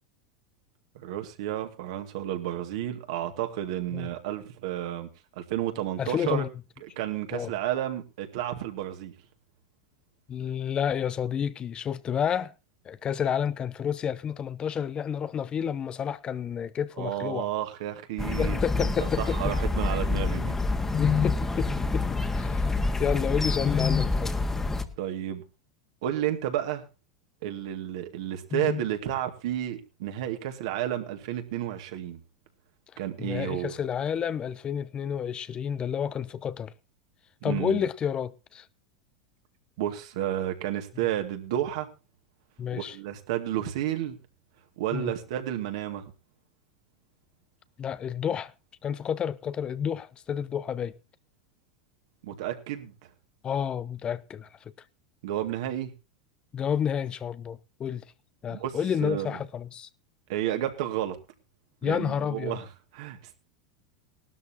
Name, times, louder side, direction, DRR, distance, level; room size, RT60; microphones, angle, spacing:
voice 1, 1.0-5.1 5.4-6.4 6.8-9.1 17.0-20.5 25.0-25.4 26.0-26.8 27.4-32.2 33.0-33.7 37.4-37.8 39.8-41.9 42.7-44.2 44.8-46.1 52.2-52.9 55.2-55.9 58.5-59.4 60.3-61.2 61.8-62.7 62.9-63.4, right 12 dB, 65° right, 2.3 m, -31 dB
voice 2, 6.0-6.5 7.3-7.5 10.3-12.5 12.9-17.5 18.4-19.4 20.9-24.3 28.5-28.8 33.2-36.7 37.4-38.6 42.6-43.0 44.9-45.1 47.8-48.5 48.8-50.9 53.4-54.5 56.5-58.0 58.4-59.9 61.8-62.6, left 8 dB, 30° left, 0.7 m, -30 dB
sound 1, 18.2-24.8, left 2 dB, 10° left, 1.7 m, -27 dB
19.0 x 12.5 x 2.9 m
hypercardioid pair, 90°, 3 cm